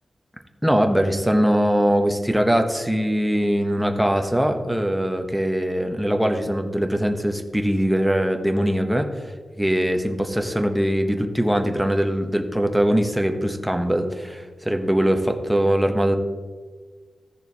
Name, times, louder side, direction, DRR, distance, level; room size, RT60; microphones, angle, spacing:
voice 1, 0.6-9.3 9.6-16.2, equal, 5° right, 5 dB, 0.7 m, -21 dB
15.5 x 6.7 x 2.7 m, 1.5 s
wide cardioid pair, 165°, 0 cm